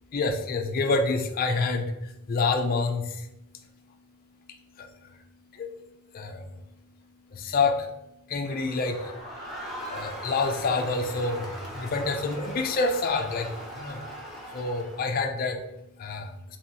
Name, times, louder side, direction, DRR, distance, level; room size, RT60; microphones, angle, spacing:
voice 1, 0.1-16.6, left 3 dB, 40° left, 5 dB, 0.4 m, -29 dB
Crowd, 8.4-15.3, equal, ahead, 0.6 m, -40 dB
4.0 x 2.9 x 2.8 m, 0.91 s
head